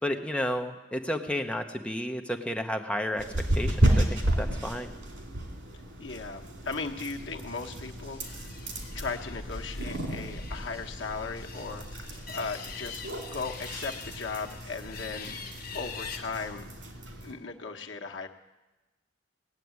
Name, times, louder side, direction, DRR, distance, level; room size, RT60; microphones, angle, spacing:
voice 1, 0.0-3.2 3.5-4.9, left 1 dB, 5° left, 4 dB, 0.9 m, -32 dB
sound 1, 3.2-17.3, right 1 dB, 90° right, 2.6 m, -33 dB
voice 2, 6.0-8.5 8.9-15.4 15.7-16.6 17.2-18.3, left 4 dB, 75° left, 3 dB, 1.2 m, -37 dB
sound 2, 7.3-13.2, right 1 dB, 30° right, 6.3 m, -54 dB
sound 3, 8.2-16.2, left 3 dB, 55° left, 1.4 m, -42 dB
18.0 x 7.5 x 9.5 m, 1.1 s
head